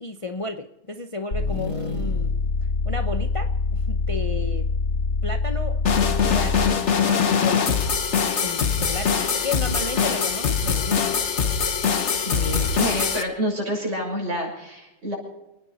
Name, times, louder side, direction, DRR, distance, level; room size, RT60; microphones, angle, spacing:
voice 1, 0.0-2.3 2.8-4.7 5.2-5.8 6.2-7.9 8.4-11.0, left 3 dB, 30° left, 6 dB, 0.8 m, -33 dB
sound 1, 1.3-6.9, left 4 dB, 85° left, 3.2 m, -25 dB
sound 2, 5.9-13.2, left 6 dB, 60° left, 1.4 m, -22 dB
voice 2, 12.2-15.1, equal, 60° right, -2 dB, 7.0 m, -28 dB
29.5 x 9.8 x 4.3 m, 0.94 s
omnidirectional pair, 1.4 m